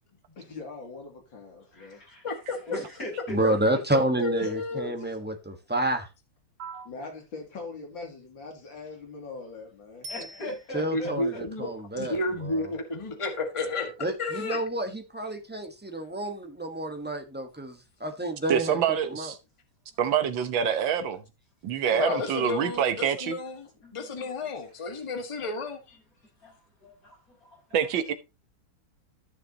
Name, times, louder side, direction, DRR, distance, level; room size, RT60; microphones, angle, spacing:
voice 1, 0.4-2.0 4.4-5.2 6.8-10.1, left 4 dB, 75° left, 3.3 m, -42 dB
voice 2, 1.7-2.2 2.5-3.4 3.7-3.8 10.1-11.4 23.8-24.3 26.4-26.5 26.8-27.5, left 1 dB, 45° left, 6.8 m, -39 dB
voice 3, 2.2-2.6 4.2-4.9 10.9-11.7 11.9-14.6 21.9-26.0, left 3 dB, 15° left, 1.5 m, -32 dB
voice 4, 3.3-6.1 10.7-12.7 14.0-18.8 19.1-19.3, right 1 dB, 5° right, 0.9 m, -29 dB
Bicycle bell, 10.0-11.2 20.2-20.3, equal, 50° right, 1.5 m, -44 dB
voice 5, 18.5-19.4 20.0-21.2 21.6-23.4 27.7-28.1, right 8 dB, 75° right, 1.8 m, -26 dB
14.5 x 6.6 x 2.9 m
omnidirectional pair, 2.1 m